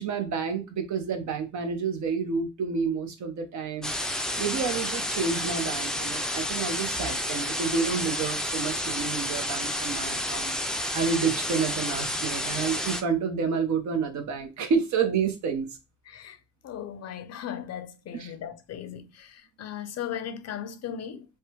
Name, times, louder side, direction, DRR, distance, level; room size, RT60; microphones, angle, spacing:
voice 1, 0.0-3.9 4.4-10.5 10.9-15.7 18.1-18.3, right 5 dB, 70° right, 0.9 m, -29 dB
sound 1, 3.8-13.0, left 1 dB, ahead, 0.4 m, -30 dB
voice 2, 16.1-16.4 16.6-21.3, left 9 dB, 60° left, 0.6 m, -37 dB
3.3 x 2.2 x 2.9 m
cardioid pair, 90°, 30 cm